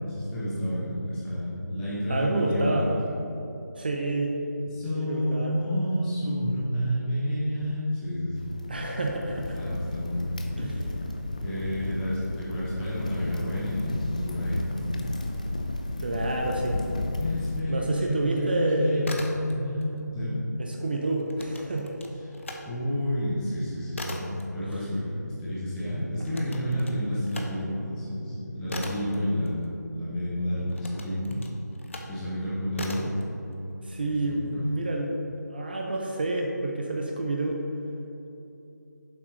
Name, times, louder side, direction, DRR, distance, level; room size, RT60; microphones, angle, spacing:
voice 1, 0.0-2.8 4.7-8.5 9.5-10.5 11.4-15.1 17.2-20.4 22.7-31.4 32.1-33.1 34.0-34.6, equal, 5° left, -9 dB, 0.8 m, -30 dB
voice 2, 2.1-2.9 3.7-4.3 4.9-5.5 8.7-9.6 10.6-10.9 15.2-15.3 16.0-16.9 17.7-19.1 20.6-21.9 33.8-35.1 35.5-37.6, right 2 dB, 30° right, 0 dB, 0.6 m, -28 dB
Crackle, 8.4-17.6, left 2 dB, 25° left, 0.4 m, -33 dB
sound 1, 18.9-19.9 20.2-22.6 23.0-30.1 30.7-32.2 32.7-33.2, left 1 dB, 45° left, 0.8 m, -39 dB
10.0 x 7.4 x 3.2 m, 3.0 s
figure-of-eight pair, 170°, 10 cm